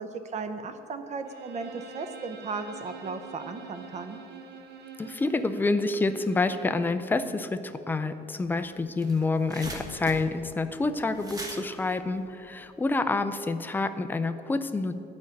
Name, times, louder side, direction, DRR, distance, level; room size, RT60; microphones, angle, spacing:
voice 1, 0.0-4.2, right 4 dB, 35° right, 8 dB, 0.7 m, -36 dB
Bowed string instrument, 1.2-7.0, right 6 dB, 65° right, 0.9 m, -46 dB
voice 2, 5.0-15.0, left 3 dB, 10° left, 10 dB, 0.4 m, -28 dB
sound 1, 8.5-8.6 8.8-13.1, right 1 dB, 20° right, 1.1 m, -41 dB
12.0 x 5.2 x 8.6 m, 2.8 s
cardioid pair, 160°, 19 cm